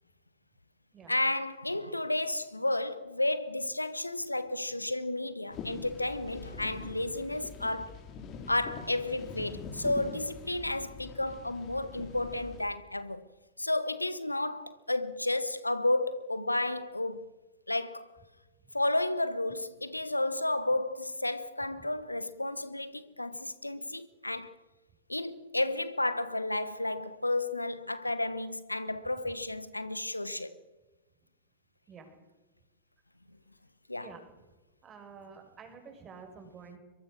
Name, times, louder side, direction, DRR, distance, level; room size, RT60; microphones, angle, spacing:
voice 1, 1.1-8.1 8.5-13.2 13.6-17.3 17.7-18.1 18.7-24.6 25.1-30.6 33.9-34.2, left 2 dB, 90° left, 1.1 m, -32 dB
sound 1, 5.5-12.6, left 5 dB, 35° left, 5.0 m, -44 dB
voice 2, 34.8-36.8, right 5 dB, 25° right, 5.9 m, -49 dB
23.5 x 23.0 x 6.5 m
figure-of-eight pair, 95°, 0 cm